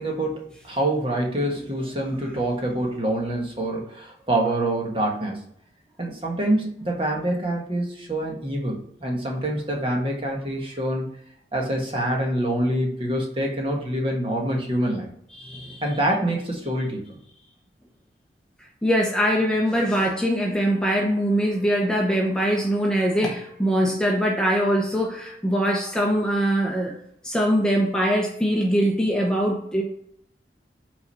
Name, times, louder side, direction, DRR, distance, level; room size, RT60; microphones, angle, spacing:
voice 1, 0.0-5.4 6.0-11.1 11.5-15.1 15.8-17.2, right 1 dB, 30° right, 0 dB, 1.3 m, -26 dB
voice 2, 15.4-15.8 18.8-26.9 27.2-29.8, equal, 5° left, -1 dB, 0.9 m, -22 dB
5.6 x 3.9 x 5.4 m, 0.69 s
head